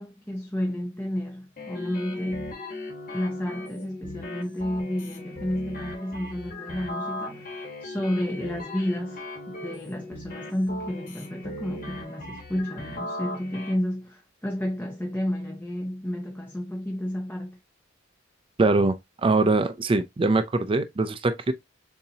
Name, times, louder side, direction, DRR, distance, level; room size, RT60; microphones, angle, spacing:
voice 1, 0.0-2.6 3.1-9.2 9.5-17.6, left 1 dB, 10° left, 0.7 m, -31 dB
sound 1, 1.6-13.7, left 1 dB, 50° left, 1.6 m, -38 dB
voice 2, 18.6-19.0 19.2-21.5, right 3 dB, 25° right, 0.4 m, -22 dB
6.9 x 2.8 x 2.8 m
head